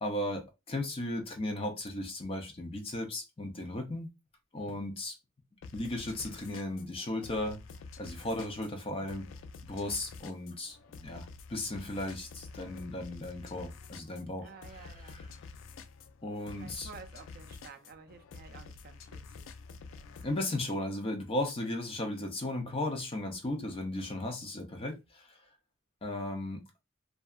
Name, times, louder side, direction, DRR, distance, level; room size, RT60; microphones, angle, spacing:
voice 1, 0.0-4.1 4.5-5.2 5.7-7.6 8.0-9.2 9.6-15.3 16.2-16.9 20.2-25.4 26.0-26.6, left 1 dB, 30° left, 0.5 m, -36 dB
sound 1, 5.6-20.4, left 4 dB, 80° left, 0.3 m, -49 dB
voice 2, 14.4-15.2 16.6-19.3, right 5 dB, 50° right, 0.4 m, -51 dB
2.7 x 2.2 x 2.3 m
head